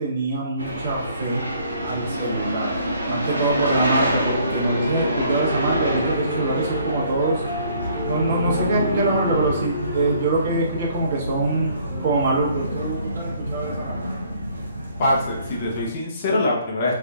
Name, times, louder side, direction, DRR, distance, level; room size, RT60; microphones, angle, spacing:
voice 1, 0.0-1.4 1.8-2.7 3.1-7.4 8.1-11.7 12.0-14.0, right 2 dB, 45° right, -3 dB, 0.9 m, -24 dB
sound 1, 0.6-15.9, equal, 90° right, 0.7 m, -27 dB
sound 2, 1.4-7.2 7.9-13.4, left 1 dB, ahead, 0.7 m, -37 dB
sound 3, 3.7-10.7, left 3 dB, 65° left, 1.1 m, -36 dB
voice 2, 15.0-16.9, left 1 dB, 40° left, -3 dB, 0.7 m, -23 dB
3.4 x 2.4 x 2.3 m, 0.81 s
figure-of-eight pair, 135°, 0 cm